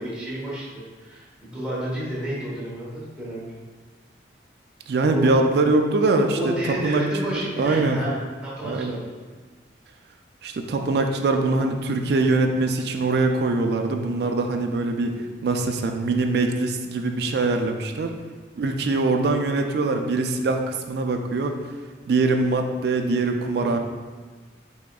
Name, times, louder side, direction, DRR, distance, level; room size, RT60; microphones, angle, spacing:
voice 1, 0.0-3.4 5.1-5.4 6.3-9.1 23.5-23.8, right 1 dB, 5° right, -8 dB, 1.1 m, -31 dB
voice 2, 4.9-8.0 8.6-9.0 10.4-15.2 15.4-18.1 18.6-21.5 22.1-23.8, right 3 dB, 60° right, 4 dB, 0.3 m, -23 dB
5.0 x 3.5 x 2.3 m, 1.4 s
head